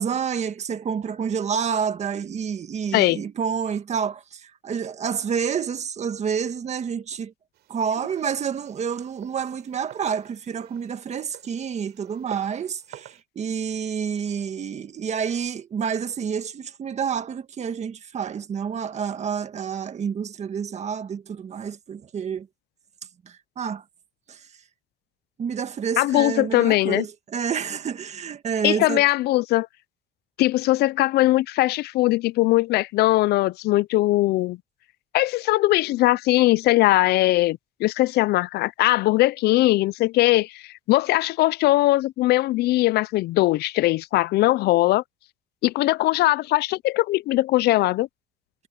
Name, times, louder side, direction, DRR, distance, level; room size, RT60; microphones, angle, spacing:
voice 1, 0.0-7.3 7.7-22.5 23.3-23.8 24.3-24.4 25.4-29.0, right 7 dB, 40° right, 1.8 m, -29 dB
sound 1, 7.5-13.2, right 14 dB, 75° right, 6.9 m, -49 dB
voice 2, 26.0-27.1 28.6-29.7 30.4-34.6 35.1-45.0 45.6-48.1, left 17 dB, 75° left, 0.5 m, -20 dB
cardioid pair, 110°, 17 cm